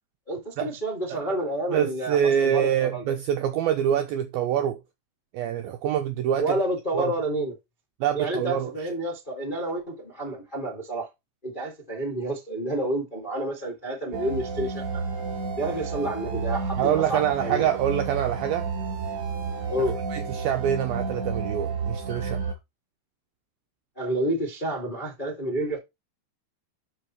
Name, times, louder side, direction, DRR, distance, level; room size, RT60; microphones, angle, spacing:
voice 1, 0.3-3.0 6.4-7.5 8.1-11.1 11.4-15.0 15.6-17.7 19.7-20.0 23.9-25.8, right 1 dB, 40° left, 0.7 m, -29 dB
voice 2, 1.7-4.8 5.3-6.6 6.9-7.1 8.0-9.0 16.8-18.7 19.8-22.4, right 9 dB, 90° right, 2.1 m, -25 dB
sound 1, 14.1-22.5, right 4 dB, 40° right, 4.8 m, -31 dB
12.0 x 5.3 x 3.1 m
omnidirectional pair, 5.1 m